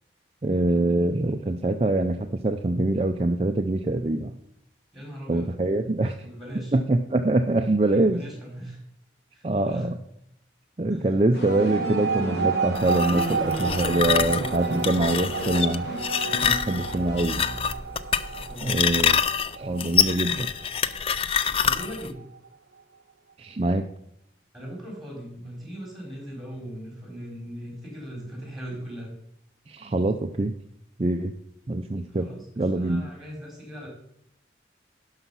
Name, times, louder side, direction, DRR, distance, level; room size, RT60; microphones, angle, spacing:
voice 1, 0.4-4.3 5.3-6.2 6.7-8.2 9.4-9.9 10.8-15.8 16.4-17.4 18.6-19.2 19.5-20.5 23.4-23.8 29.7-30.5 31.0-31.3 31.7-32.3 32.6-33.0, right 2 dB, 30° right, 6 dB, 0.5 m, -24 dB
voice 2, 4.9-5.5 6.2-6.7 7.9-8.8 9.3-9.9 10.9-11.1 14.7-15.0 18.3-19.1 21.6-22.2 24.5-29.1 32.1-33.9, equal, ahead, -2 dB, 4.1 m, -39 dB
sound 1, 11.3-18.0, equal, 65° left, 2.5 m, -34 dB
sound 2, 11.5-22.5, right 5 dB, 80° right, 0.7 m, -32 dB
sound 3, 12.7-22.1, left 7 dB, 30° left, 0.4 m, -26 dB
12.0 x 5.7 x 5.5 m, 0.74 s
head